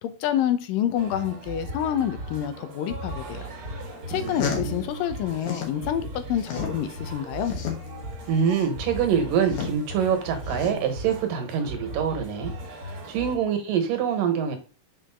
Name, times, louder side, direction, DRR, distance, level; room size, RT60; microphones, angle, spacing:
voice 1, 0.0-3.5 4.1-7.5, left 10 dB, 80° left, 10 dB, 2.4 m, -28 dB
sound 1, 1.0-13.4, right 1 dB, 50° right, 1.8 m, -37 dB
sound 2, 4.1-5.8 6.1-11.1, left 8 dB, 65° left, 2.4 m, -34 dB
voice 2, 4.1-4.8 8.3-14.6, right 7 dB, 75° right, 6 dB, 2.9 m, -25 dB
6.4 x 5.2 x 3.6 m, 0.35 s
omnidirectional pair, 4.0 m